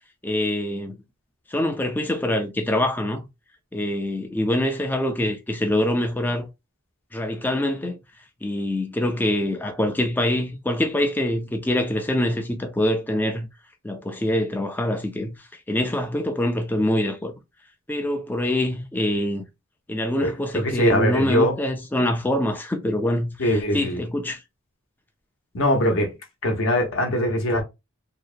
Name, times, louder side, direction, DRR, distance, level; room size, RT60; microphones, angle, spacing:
voice 1, 0.2-1.0 1.5-3.2 3.7-6.5 7.1-8.0 8.4-13.5 13.8-15.4 15.7-17.3 17.9-19.4 19.9-24.4, left 1 dB, 10° left, 0.3 m, -24 dB
voice 2, 20.2-21.5 23.4-24.0 25.5-26.1 26.4-27.6, equal, 60° left, 0.7 m, -22 dB
2.8 x 2.1 x 2.4 m
head